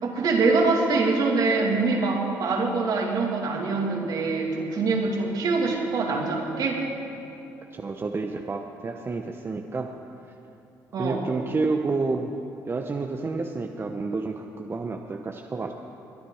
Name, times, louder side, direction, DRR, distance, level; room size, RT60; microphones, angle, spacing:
voice 1, 0.0-6.8 10.9-11.3, right 3 dB, 60° right, 0 dB, 2.5 m, -24 dB
voice 2, 7.7-9.9 11.0-12.3 12.7-15.7, right 3 dB, 30° right, 4 dB, 0.8 m, -29 dB
22.0 x 10.0 x 4.8 m, 2.8 s
supercardioid pair, 70°, 7 cm